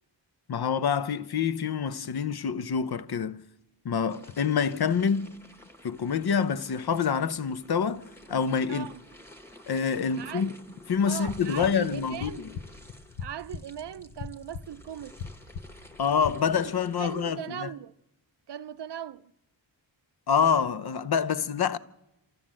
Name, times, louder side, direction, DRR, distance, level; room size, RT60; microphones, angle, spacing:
voice 1, 0.5-3.4 3.8-5.4 5.8-8.0 8.3-8.9 9.7-10.5 10.9-12.3 16.0-17.7 20.3-21.8, left 6 dB, 55° left, 0.8 m, -26 dB
sound 1, 4.1-17.4, left 1 dB, 5° left, 1.5 m, -51 dB
voice 2, 8.7-9.0 10.2-10.6 11.0-12.5 13.2-15.2 16.6-16.7 17.0-17.9 18.5-19.3, right 10 dB, 60° right, 0.6 m, -39 dB
sound 2, 11.1-16.3, left 6 dB, 75° left, 1.2 m, -41 dB
24.5 x 14.5 x 7.5 m
wide cardioid pair, 145°, 47 cm